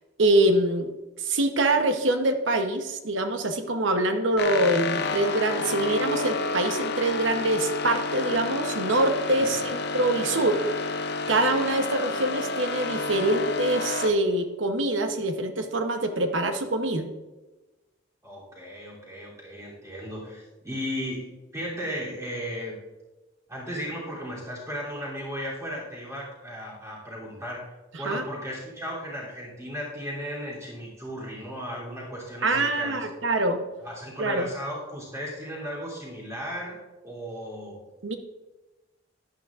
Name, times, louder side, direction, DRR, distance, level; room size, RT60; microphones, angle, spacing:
voice 1, 0.2-10.6 11.3-17.1 27.9-28.2 32.4-33.6 34.2-34.5 38.0-38.2, right 2 dB, 80° right, 7 dB, 0.9 m, -25 dB
sound 1, 4.4-14.1, left 3 dB, 60° left, 0.6 m, -30 dB
voice 2, 18.2-22.8 23.5-27.7 28.0-33.0 33.8-37.8, equal, 15° right, -5 dB, 3.1 m, -36 dB
11.5 x 11.5 x 2.5 m, 1.1 s
head